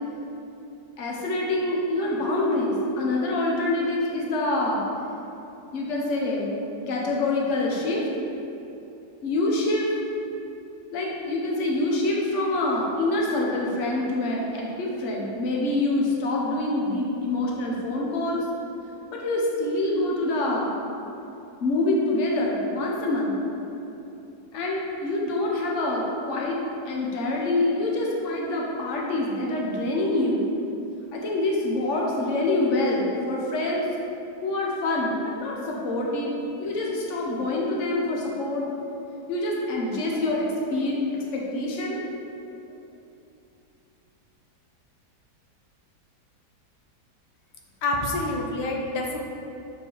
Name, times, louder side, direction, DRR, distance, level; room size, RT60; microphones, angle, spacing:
voice 1, 1.0-4.9 5.7-8.1 9.2-9.9 10.9-18.4 19.1-20.8 21.6-23.3 24.5-26.6 26.8-30.4 31.1-33.9 34.4-38.7 39.3-42.0, left 2 dB, 50° left, -2 dB, 1.2 m, -26 dB
voice 2, 47.8-49.2, left 2 dB, 90° left, -1 dB, 1.5 m, -27 dB
6.7 x 4.4 x 4.5 m, 2.9 s
omnidirectional pair, 1.8 m